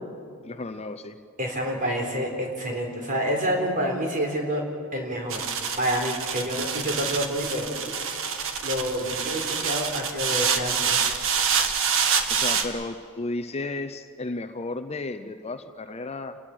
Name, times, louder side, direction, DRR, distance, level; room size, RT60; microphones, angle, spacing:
voice 1, 0.4-1.2 12.3-16.4, left 2 dB, 30° left, 9 dB, 0.7 m, -33 dB
voice 2, 1.4-4.6 4.9-5.4 5.8-7.7 8.6-10.9, equal, 40° right, 1 dB, 4.2 m, -28 dB
sound 1, 5.3-12.6, right 6 dB, 65° right, 1.5 m, -26 dB
29.0 x 19.5 x 6.3 m, 2.3 s
head